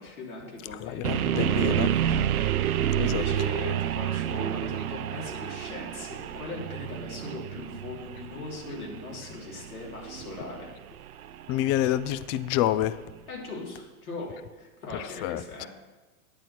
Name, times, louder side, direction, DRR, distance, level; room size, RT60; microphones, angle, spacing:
voice 1, 0.0-1.0 1.4-10.7 13.3-15.7, left 3 dB, 85° left, -4 dB, 3.6 m, -39 dB
voice 2, 0.8-1.9 2.9-3.2 11.5-13.0 15.2-15.4, left 13 dB, 35° left, 16 dB, 0.4 m, -27 dB
sound 1, 1.0-13.0, right 10 dB, 80° right, 0.7 m, -30 dB
10.5 x 9.1 x 4.4 m, 1.2 s
hypercardioid pair, 105°, 43 cm